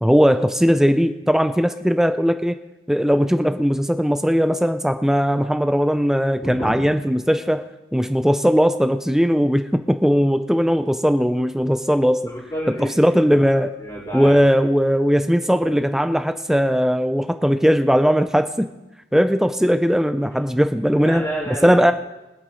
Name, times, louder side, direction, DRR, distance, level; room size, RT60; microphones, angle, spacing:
voice 1, 0.0-2.6 2.9-12.3 12.7-13.8 14.1-18.7 19.1-21.2 21.6-21.9, equal, ahead, 8 dB, 0.4 m, -18 dB
voice 2, 6.4-6.8 12.3-13.5 13.8-14.4 20.9-21.8, equal, 20° left, -12 dB, 4.6 m, -30 dB
24.0 x 8.7 x 3.2 m, 1.0 s
head